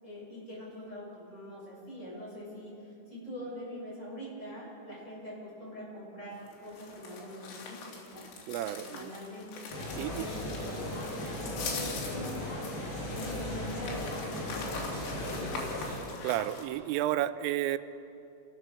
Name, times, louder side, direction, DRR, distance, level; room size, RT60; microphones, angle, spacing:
voice 1, 0.0-8.3 8.7-12.6 13.1-15.7, equal, 15° left, -5 dB, 8.1 m, -43 dB
sound 1, 6.3-16.6, left 4 dB, 80° left, 5.3 m, -43 dB
voice 2, 8.5-9.1 10.0-10.2 16.2-17.8, right 13 dB, 90° right, 13 dB, 3.2 m, -31 dB
sound 2, 9.7-16.0, left 1 dB, 45° left, 7.9 m, -37 dB
28.5 x 17.5 x 6.9 m, 2.8 s
omnidirectional pair, 5.6 m